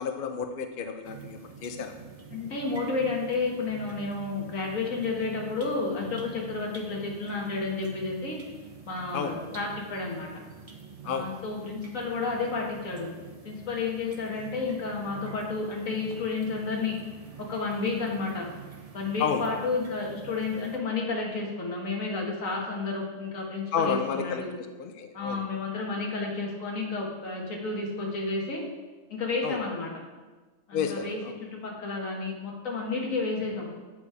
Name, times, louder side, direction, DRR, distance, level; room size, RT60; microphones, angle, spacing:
voice 1, 0.0-2.0 9.1-9.4 11.0-11.4 19.2-19.5 23.7-24.4 24.8-25.4 29.4-29.6 30.7-31.4, left 6 dB, 55° left, 6 dB, 0.6 m, -31 dB
sound 1, 1.0-20.8, right 6 dB, 35° right, 0.7 m, -46 dB
voice 2, 2.3-8.4 8.8-10.3 11.0-13.1 13.4-17.0 17.4-18.5 18.9-24.5 25.1-28.6 29.1-29.9 30.7-33.7, left 4 dB, 75° left, -1 dB, 1.8 m, -31 dB
8.2 x 5.0 x 4.8 m, 1.3 s
omnidirectional pair, 1.4 m